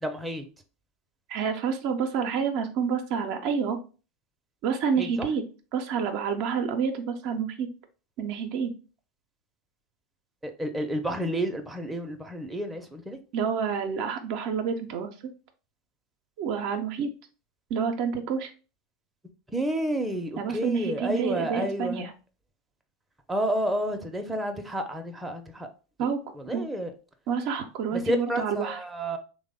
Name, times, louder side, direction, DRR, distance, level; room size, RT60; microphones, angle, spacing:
voice 1, 0.0-0.4 5.0-5.3 10.4-13.2 19.5-22.0 23.3-25.7 26.3-26.9 27.9-29.2, right 1 dB, 10° right, 0.5 m, -30 dB
voice 2, 1.3-3.8 4.6-5.4 5.7-7.7 8.2-8.7 13.3-15.1 16.4-17.1 17.7-18.5 20.4-22.1 26.0-26.2 26.5-26.6 27.3-28.8, right 6 dB, 60° right, 0.4 m, -28 dB
3.1 x 2.1 x 3.5 m
hypercardioid pair, 85°, 0 cm